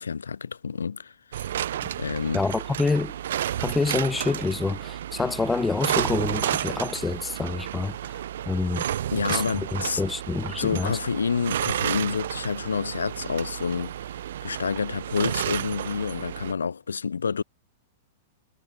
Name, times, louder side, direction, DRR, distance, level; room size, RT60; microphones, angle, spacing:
voice 1, 0.0-1.5 2.0-2.4 9.1-10.0 10.6-13.9 14.4-17.4, left 6 dB, 75° left, 3.4 m, -28 dB
sound 1, 1.3-16.5, right 11 dB, 60° right, 1.9 m, -31 dB
voice 2, 2.3-3.1 3.6-8.9 9.3-11.0, left 3 dB, 10° left, 1.8 m, -27 dB
figure-of-eight pair, 100°, 0 cm